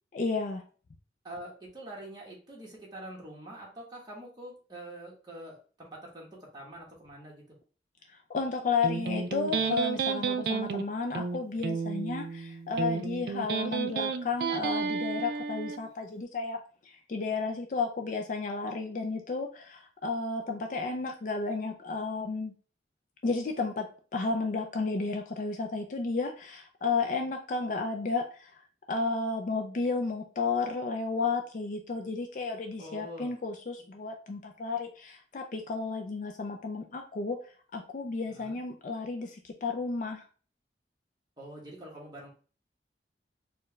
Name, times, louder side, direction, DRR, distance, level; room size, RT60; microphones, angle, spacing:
voice 1, 0.1-0.6 8.1-22.5 23.2-23.9 24.1-28.5 28.9-37.4 37.7-40.2, left 4 dB, 45° left, 4 dB, 0.4 m, -32 dB
voice 2, 1.2-7.4 32.8-33.3 33.8-33.9 38.2-38.6 41.4-42.3, right 1 dB, 25° right, -3 dB, 1.2 m, -45 dB
Electric guitar, 8.8-15.8, right 5 dB, 60° right, 0.3 m, -32 dB
4.3 x 2.2 x 3.0 m, 0.39 s
head